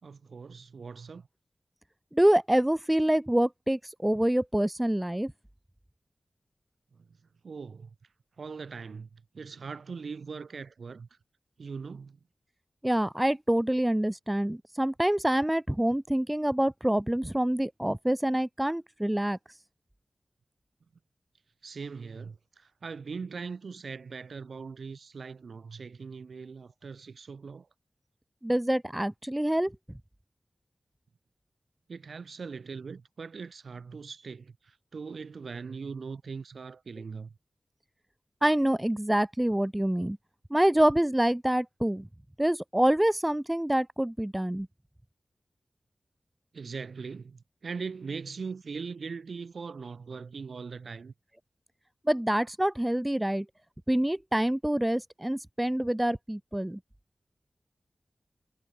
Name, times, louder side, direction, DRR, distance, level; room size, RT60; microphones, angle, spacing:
voice 1, 0.0-1.3 6.9-7.2 7.4-8.0 8.4-11.2 11.6-12.2 21.6-27.7 31.9-37.4 46.5-51.1, right 5 dB, 85° right, 3.5 m, -40 dB
voice 2, 2.1-5.3 12.8-19.4 28.4-29.7 38.4-40.2 40.5-42.1 42.4-44.7 52.1-53.5 53.9-56.8, right 1 dB, 15° right, 0.9 m, -26 dB
cardioid pair, 45°, 0 cm